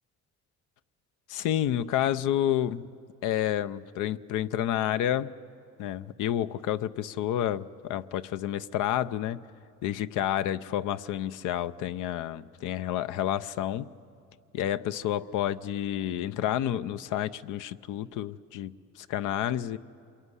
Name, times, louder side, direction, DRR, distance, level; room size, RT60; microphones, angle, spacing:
voice 1, 1.3-2.9 3.2-5.3 5.8-9.4 9.8-13.9 14.5-19.8, left 11 dB, 90° left, 13 dB, 0.7 m, -29 dB
27.5 x 22.0 x 9.8 m, 2.5 s
cardioid pair, 90°, 30 cm